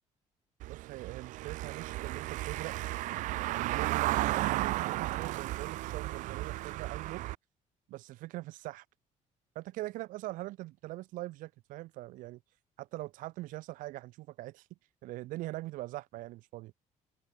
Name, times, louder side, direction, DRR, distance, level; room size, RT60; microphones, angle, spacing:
Car passing by / Engine, 0.6-7.4, right 17 dB, 70° right, 0.5 m, -34 dB
voice 1, 0.7-2.8 3.5-7.2 7.9-8.8 9.5-12.4 12.8-14.7 15.0-16.7, right 18 dB, 90° right, 4.3 m, -42 dB
cardioid pair, 160°, 13 cm